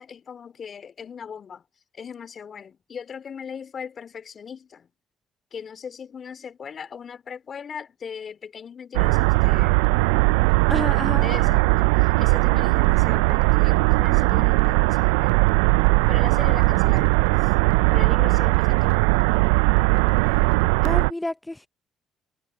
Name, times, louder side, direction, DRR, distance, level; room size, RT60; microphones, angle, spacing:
voice 1, 0.0-1.6 1.9-4.9 5.5-9.8 11.2-15.4 16.1-17.5 17.9-19.2, left 7 dB, 45° left, 2.6 m, -39 dB
sound 1, 8.9-21.1, right 25 dB, 85° right, 0.4 m, -19 dB
voice 2, 10.7-11.3 20.8-21.7, left 1 dB, 10° left, 0.6 m, -30 dB
hypercardioid pair, 60°, 0 cm